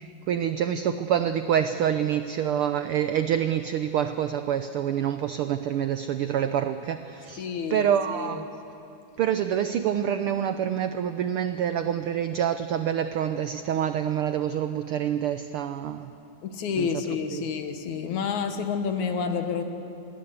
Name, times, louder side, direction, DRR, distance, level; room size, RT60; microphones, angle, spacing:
voice 1, 0.0-7.4 7.7-8.5 9.2-16.1 16.8-16.9 17.3-17.4, right 9 dB, 90° right, 10 dB, 1.2 m, -26 dB
voice 2, 7.4-8.4 16.4-19.6, left 6 dB, 80° left, 7 dB, 2.9 m, -29 dB
27.0 x 21.0 x 8.2 m, 2.8 s
omnidirectional pair, 3.3 m